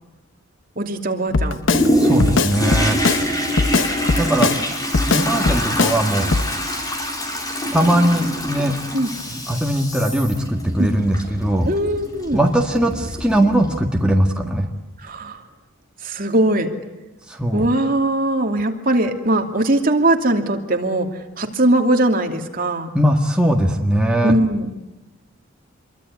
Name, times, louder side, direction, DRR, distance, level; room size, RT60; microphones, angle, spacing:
voice 1, 0.8-1.6 8.9-9.1 10.8-10.9 11.6-12.4 15.0-15.4 16.0-16.7 17.5-21.1 21.4-22.9 24.2-24.7, right 1 dB, 45° right, 3 dB, 2.7 m, -20 dB
Drum kit, 1.3-1.9 2.2-3.2 3.6-4.6 4.9-6.0 6.3-6.5, left 3 dB, 65° left, 1.0 m, -19 dB
Toilet flush, 1.7-14.1 14.6-14.7, equal, 20° left, 4.1 m, -25 dB
voice 2, 1.9-3.0 4.2-4.5 5.1-6.3 7.7-8.8 9.3-11.7 12.3-14.7 17.3-17.7 22.9-24.3, right 1 dB, 5° right, 0 dB, 1.8 m, -19 dB
27.0 x 23.0 x 9.6 m, 1.0 s
head